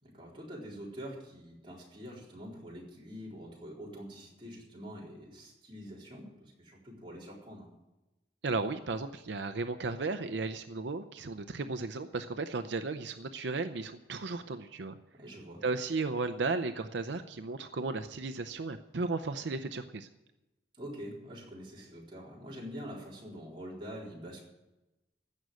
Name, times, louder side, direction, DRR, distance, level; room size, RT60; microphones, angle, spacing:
voice 1, 0.0-7.7 15.2-15.6 20.8-24.4, equal, 25° right, -4 dB, 4.1 m, -45 dB
voice 2, 8.4-15.0 15.6-20.1, right 3 dB, 80° right, 9 dB, 0.6 m, -35 dB
15.5 x 6.4 x 9.4 m, 1.0 s
head